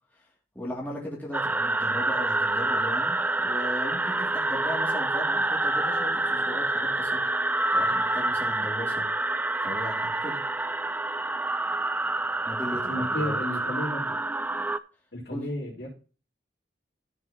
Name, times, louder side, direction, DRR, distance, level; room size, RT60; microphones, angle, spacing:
voice 1, 0.5-7.2 7.7-9.0 9.6-10.4 12.5-13.3 15.3-15.4, left 1 dB, 10° left, -3 dB, 2.6 m, -37 dB
sound 1, 1.3-14.8, right 2 dB, 10° right, 0.3 m, -27 dB
voice 2, 12.9-14.2 15.1-15.9, left 1 dB, 80° left, -9 dB, 3.5 m, -32 dB
14.0 x 6.0 x 2.9 m, 0.36 s
head